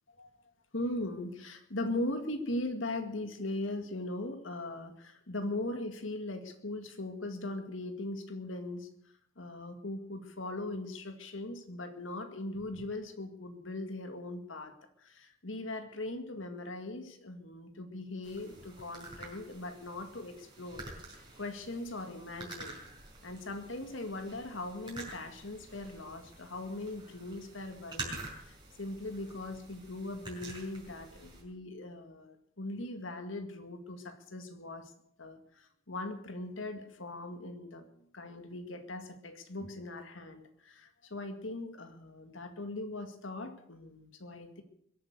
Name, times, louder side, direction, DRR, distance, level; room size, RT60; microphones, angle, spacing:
voice 1, 0.7-8.9 9.4-22.8 23.2-34.9 35.2-37.9 38.1-44.6, left 2 dB, 90° left, 7 dB, 2.1 m, -40 dB
sound 1, 18.2-31.4, right 2 dB, 25° right, 5.3 m, -48 dB
22.0 x 8.9 x 6.7 m, 0.70 s
head